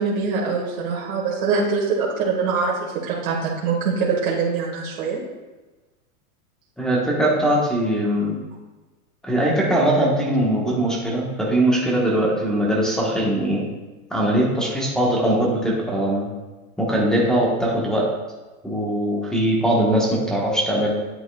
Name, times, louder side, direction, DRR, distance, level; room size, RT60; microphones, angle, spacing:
voice 1, 0.0-5.2, right 5 dB, 65° right, -5 dB, 1.8 m, -23 dB
voice 2, 6.8-8.4 9.2-13.7 14.1-16.3 16.8-18.1 18.6-20.9, right 1 dB, ahead, -3 dB, 1.2 m, -21 dB
9.3 x 7.9 x 2.3 m, 1.2 s
supercardioid pair, 150°, 45 cm